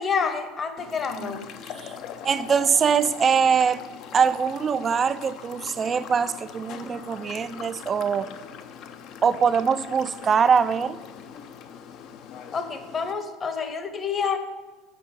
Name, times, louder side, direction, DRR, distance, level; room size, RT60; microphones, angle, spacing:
voice 1, 0.0-1.4 12.5-14.4, left 6 dB, 30° left, 8 dB, 0.8 m, -28 dB
sound 1, 0.8-13.1, left 8 dB, 50° left, 0.5 m, -41 dB
voice 2, 2.2-3.8 4.1-8.3 9.2-11.0, right 6 dB, 30° right, 15 dB, 0.4 m, -22 dB
7.5 x 5.4 x 5.2 m, 1.2 s
figure-of-eight pair, 70°, 0 cm